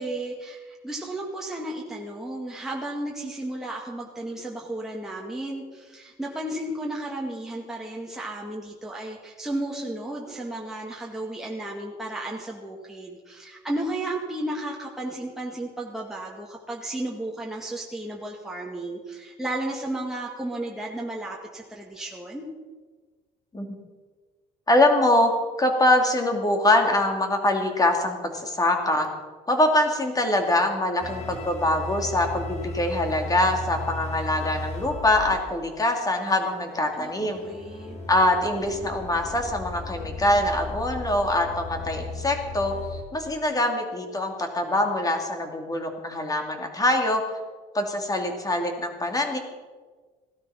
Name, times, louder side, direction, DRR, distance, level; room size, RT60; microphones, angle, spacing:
voice 1, 0.0-22.5 37.0-38.0, right 1 dB, 5° right, -3 dB, 2.0 m, -33 dB
voice 2, 24.7-25.3 25.6-29.1 29.5-37.4 38.1-47.2 47.7-49.4, left 1 dB, 20° left, 4 dB, 2.7 m, -23 dB
sound 1, 31.0-43.0, left 2 dB, 40° left, 3.3 m, -36 dB
17.0 x 12.5 x 5.8 m, 1.4 s
cardioid pair, 110°, 17 cm